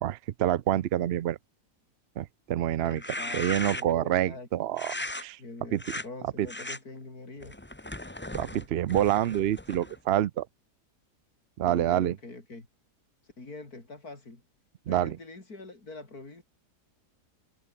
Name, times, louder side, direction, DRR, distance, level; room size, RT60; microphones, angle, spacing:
voice 1, 0.0-1.4 2.2-3.0 3.3-5.4 5.7-5.8 6.4-6.5 8.3-10.5 11.6-12.2 14.9-15.2, right 12 dB, 70° right, 0.6 m, -27 dB
voice 2, 2.8-4.5 5.4-7.6 11.6-12.7 13.4-14.4 14.9-16.4, left 3 dB, 65° left, 5.0 m, -44 dB
sound 1, 2.9-4.1 4.8-5.2 5.8-6.1 6.5-6.8 7.4-10.0, left 1 dB, 10° left, 1.1 m, -37 dB
omnidirectional pair, 1.7 m